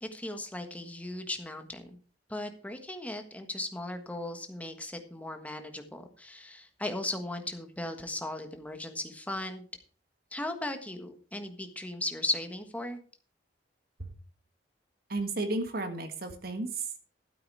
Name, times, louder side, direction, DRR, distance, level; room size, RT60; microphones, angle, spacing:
voice 1, 0.0-2.0 2.3-9.7 10.3-13.0, left 1 dB, 10° left, 6 dB, 1.4 m, -37 dB
voice 2, 15.1-17.0, right 2 dB, 60° right, 7 dB, 1.7 m, -33 dB
12.5 x 8.6 x 4.7 m, 0.40 s
head